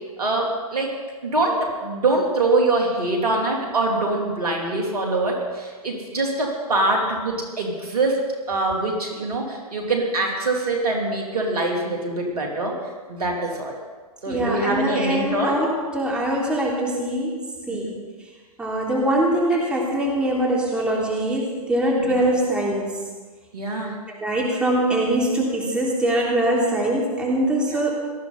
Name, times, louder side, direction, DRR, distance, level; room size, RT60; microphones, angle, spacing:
voice 1, 0.2-0.9 1.2-8.2 8.5-12.7 13.1-13.8 14.2-15.5 17.7-17.9 23.5-24.0 27.7-27.8, right 2 dB, 75° right, 0 dB, 3.5 m, -24 dB
voice 2, 14.3-18.0 18.6-23.0 24.1-27.9, right 1 dB, 5° right, -4 dB, 3.3 m, -23 dB
18.5 x 13.5 x 4.2 m, 1.4 s
figure-of-eight pair, 115°, 19 cm